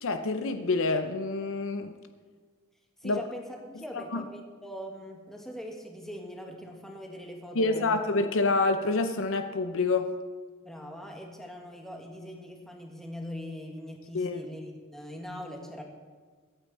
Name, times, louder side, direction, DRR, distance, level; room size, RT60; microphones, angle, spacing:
voice 1, 0.0-1.9 3.0-3.2 4.1-4.2 7.6-10.1 14.1-14.4, left 3 dB, 60° left, 8 dB, 0.7 m, -27 dB
voice 2, 3.0-8.0 10.6-15.8, equal, ahead, 1 dB, 1.8 m, -41 dB
23.0 x 8.8 x 4.3 m, 1.5 s
head